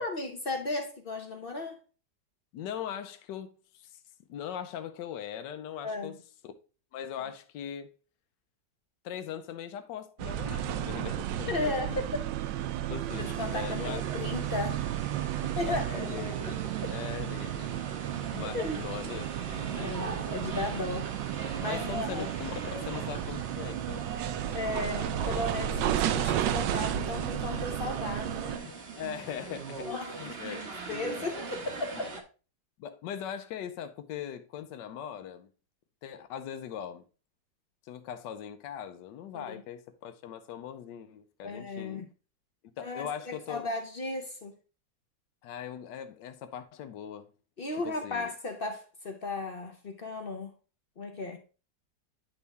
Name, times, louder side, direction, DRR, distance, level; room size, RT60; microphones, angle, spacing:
voice 1, 0.0-1.8 5.8-6.2 11.5-12.1 13.2-14.8 15.4-15.9 16.5-16.6 18.5-18.8 19.7-22.3 24.5-28.7 29.8-30.2 30.5-32.1 39.3-39.6 41.4-42.1 42.8-44.5 47.6-50.5 51.0-51.4, left 2 dB, 50° left, 0.7 m, -35 dB
voice 2, 2.5-4.0 4.3-6.1 6.4-6.5 6.9-7.9 9.0-12.0 12.9-14.0 15.6-18.0 18.3-20.0 21.7-24.1 28.6-29.9 30.2-30.7 30.9-31.3 31.9-32.1 32.8-35.5 36.0-37.0 37.8-42.0 42.8-43.6 45.4-47.3 47.8-48.3, left 9 dB, 80° left, 1.3 m, -40 dB
sound 1, 10.2-28.6, right 11 dB, 80° right, 1.2 m, -33 dB
sound 2, 13.1-32.2, right 5 dB, 40° right, 1.0 m, -42 dB
9.7 x 3.5 x 4.0 m
omnidirectional pair, 1.9 m